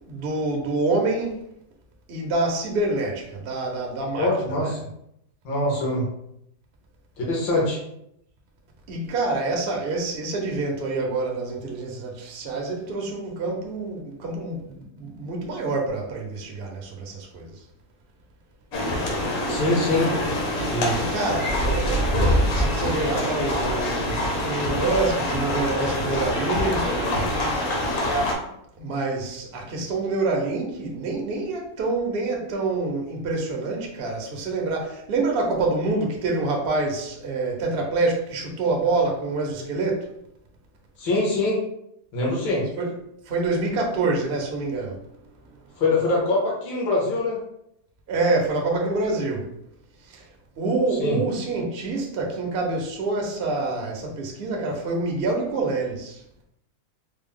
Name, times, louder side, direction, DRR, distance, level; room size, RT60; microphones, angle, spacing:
voice 1, 0.1-1.4 2.1-4.7 8.9-17.5 20.0-20.1 20.9-27.3 28.8-40.1 42.8-42.9 43.3-45.0 48.1-49.5 50.1-50.2 50.6-56.2, right 3 dB, 85° right, 0 dB, 0.5 m, -27 dB
voice 2, 4.2-4.9 5.5-6.1 7.3-7.8 19.5-20.1 20.7-21.0 41.0-41.6 42.1-42.6 45.8-47.4 51.0-51.2, left 2 dB, 75° left, -4 dB, 1.7 m, -23 dB
sound 1, 18.7-28.3, left 1 dB, 55° left, 0.9 m, -25 dB
4.2 x 2.0 x 3.6 m, 0.77 s
omnidirectional pair, 2.1 m